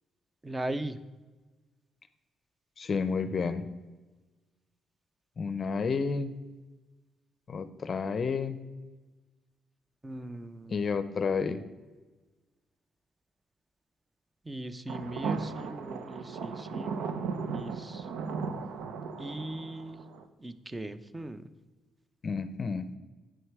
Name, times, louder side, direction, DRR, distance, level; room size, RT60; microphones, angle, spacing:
voice 1, 0.4-1.0 10.0-10.8 14.4-17.3 17.5-18.1 19.2-20.0 20.4-21.4, right 1 dB, 15° right, 13 dB, 0.6 m, -39 dB
voice 2, 2.8-3.6 5.4-6.3 7.5-8.6 10.7-11.6 22.2-22.9, left 5 dB, 45° left, 12 dB, 0.6 m, -30 dB
sound 1, 14.9-20.2, right 5 dB, 85° right, 0.7 m, -36 dB
9.7 x 6.2 x 4.7 m, 1.2 s
cardioid pair, 90°, 0 cm